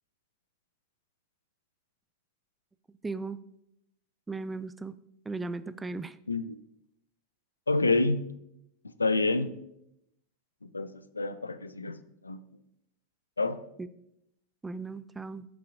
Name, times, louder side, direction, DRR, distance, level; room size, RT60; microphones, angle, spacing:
voice 1, 3.0-3.4 4.3-5.0 5.3-6.2 13.8-13.9 14.6-15.5, right 3 dB, 10° right, 14 dB, 0.4 m, -36 dB
voice 2, 7.7-8.3 8.8-9.5 10.6-12.4 13.4-13.6, left 3 dB, 80° left, 13 dB, 0.4 m, -28 dB
14.0 x 5.7 x 2.5 m, 0.81 s
figure-of-eight pair, 90°, 0 cm